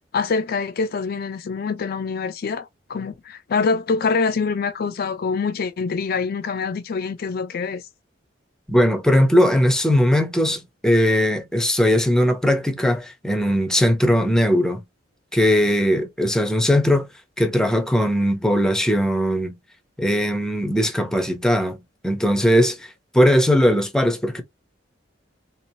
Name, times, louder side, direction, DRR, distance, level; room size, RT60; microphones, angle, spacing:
voice 1, 0.1-7.8, left 4 dB, 50° left, 0.4 m, -25 dB
voice 2, 8.7-14.8 15.3-17.1 17.4-19.5 20.0-21.8 22.0-22.8 23.1-24.4, equal, 5° left, 0.6 m, -19 dB
3.7 x 2.9 x 2.7 m
head